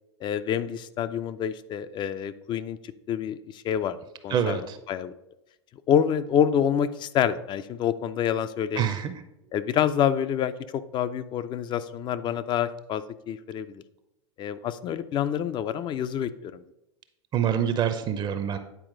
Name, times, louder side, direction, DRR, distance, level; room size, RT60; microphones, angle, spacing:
voice 1, 0.2-2.8 3.1-5.1 5.9-8.9 9.5-13.8 14.4-16.6, left 9 dB, 30° left, 14 dB, 0.4 m, -27 dB
voice 2, 4.3-4.8 8.8-9.2 17.3-18.6, right 8 dB, 30° right, 10 dB, 0.5 m, -26 dB
9.1 x 4.4 x 3.8 m, 0.89 s
hypercardioid pair, 95°, 15 cm